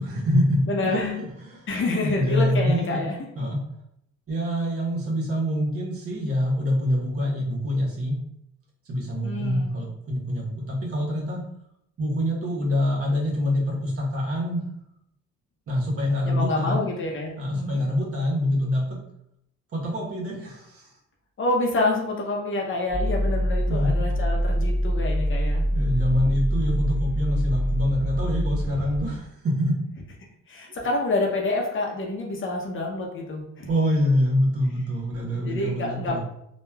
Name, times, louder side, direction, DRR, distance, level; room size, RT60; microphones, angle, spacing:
voice 1, 0.0-1.7 2.1-3.0 3.3-3.6 4.3-8.2 8.9-11.4 12.0-14.7 15.7-16.8 17.4-18.8 19.7-20.9 23.7-24.0 25.7-29.8 30.6-30.8 33.7-36.2, equal, 50° right, -3 dB, 1.0 m, -25 dB
voice 2, 0.7-1.2 1.7-3.2 9.2-9.8 16.3-17.8 21.4-25.6 30.5-33.7 35.3-36.2, left 2 dB, 40° left, 0 dB, 0.7 m, -27 dB
sound 1, 22.9-29.1, equal, 10° right, 0.5 m, -25 dB
3.1 x 2.2 x 2.2 m, 0.75 s
cardioid pair, 90°, 30 cm